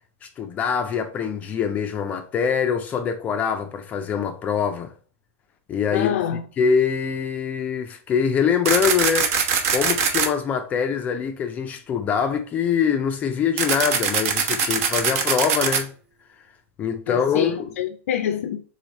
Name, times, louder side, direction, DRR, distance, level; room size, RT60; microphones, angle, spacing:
voice 1, 0.2-4.9 5.7-6.2 6.6-9.3 9.7-15.9 16.8-17.7, left 7 dB, 20° left, 0.4 m, -24 dB
voice 2, 5.9-6.5 17.1-18.6, left 9 dB, 80° left, 0.5 m, -26 dB
sound 1, 8.7-10.3 13.6-15.8, right 6 dB, 70° right, 1.0 m, -22 dB
3.9 x 3.2 x 4.0 m
supercardioid pair, 160°, 8 cm